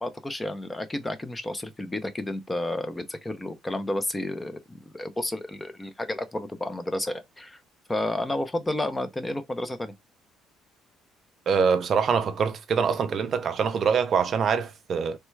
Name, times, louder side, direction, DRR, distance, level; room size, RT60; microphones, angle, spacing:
voice 1, 0.0-7.6 7.9-9.9, left 1 dB, 10° left, 0.5 m, -31 dB
voice 2, 11.5-15.2, right 6 dB, 40° right, 0.4 m, -24 dB
3.2 x 2.2 x 3.0 m
cardioid pair, 140°, 0 cm